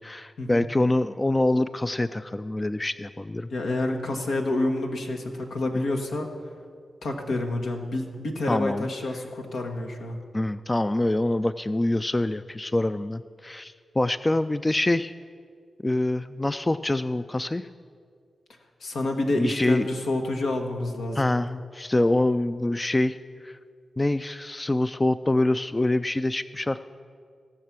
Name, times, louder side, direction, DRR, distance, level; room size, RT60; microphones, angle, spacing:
voice 1, 0.0-3.5 5.7-6.1 7.3-7.4 8.5-8.9 10.3-15.1 15.8-17.7 19.4-19.9 21.2-23.2 23.4-23.6 24.0-26.8, left 1 dB, 25° left, 13 dB, 0.3 m, -25 dB
voice 2, 3.5-6.3 7.0-10.2 18.8-21.3, left 2 dB, 85° left, 2 dB, 1.4 m, -28 dB
17.5 x 6.5 x 6.0 m, 2.1 s
cardioid pair, 45°, 0 cm